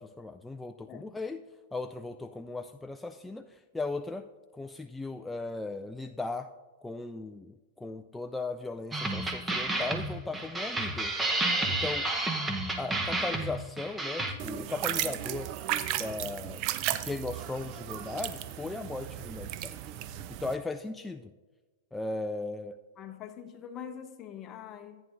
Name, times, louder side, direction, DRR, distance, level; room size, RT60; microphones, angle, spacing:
voice 1, 0.0-1.4 1.7-4.3 4.5-6.5 6.8-11.1 11.7-12.1 12.8-15.5 16.0-16.6 16.9-19.8 20.4-21.3 21.9-22.8, left 3 dB, 5° left, 6 dB, 0.3 m, -37 dB
sound 1, 8.9-14.3, right 2 dB, 10° right, 0.9 m, -31 dB
sound 2, 14.4-20.5, right 12 dB, 45° right, 0.5 m, -35 dB
voice 2, 23.0-25.0, left 8 dB, 30° left, 7 dB, 0.9 m, -44 dB
14.5 x 9.1 x 2.6 m, 1.3 s
hypercardioid pair, 115°, 0 cm